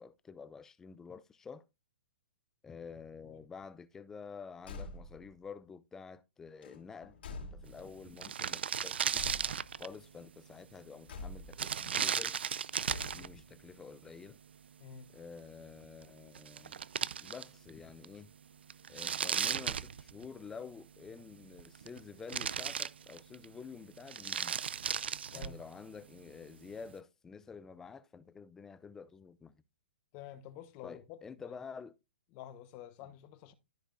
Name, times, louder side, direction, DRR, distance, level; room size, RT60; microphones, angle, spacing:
voice 1, 0.0-1.7 2.6-9.3 9.8-12.4 13.0-14.4 15.1-16.8 17.2-18.3 18.9-24.5 25.3-29.6 30.8-32.0 33.0-33.1, left 5 dB, 10° left, 0.4 m, -49 dB
Car / Truck / Slam, 4.6-5.3 6.6-8.0 9.1-9.9 11.1-11.7 12.8-13.5, left 3 dB, 70° left, 3.0 m, -46 dB
sound 1, 7.8-7.9 8.1-10.0 11.5-13.3 16.0-16.1 16.3-17.7 18.0-18.1 18.7-20.5 21.4-22.0 22.3-23.4 24.0-25.6, right 7 dB, 90° right, 0.4 m, -35 dB
voice 2, 14.8-15.1 25.3-25.6 30.1-31.2 31.4-31.6 32.3-33.5, left 10 dB, 30° left, 1.0 m, -49 dB
13.5 x 5.1 x 2.5 m
hypercardioid pair, 160°, 6 cm